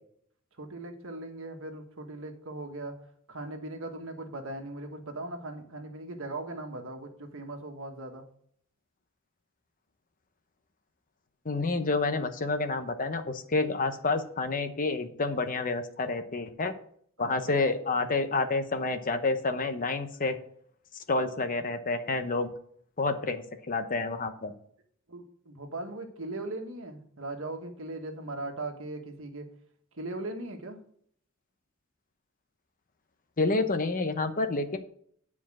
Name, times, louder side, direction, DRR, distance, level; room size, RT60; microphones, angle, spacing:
voice 1, 0.6-2.9 3.3-8.2 17.2-17.3 25.1-29.4 30.0-30.8, right 2 dB, 65° right, 4 dB, 1.4 m, -39 dB
voice 2, 11.4-16.7 17.2-20.4 21.1-22.5 23.0-24.5 33.4-34.8, left 3 dB, 40° left, 8 dB, 0.9 m, -29 dB
9.7 x 4.8 x 6.1 m, 0.63 s
head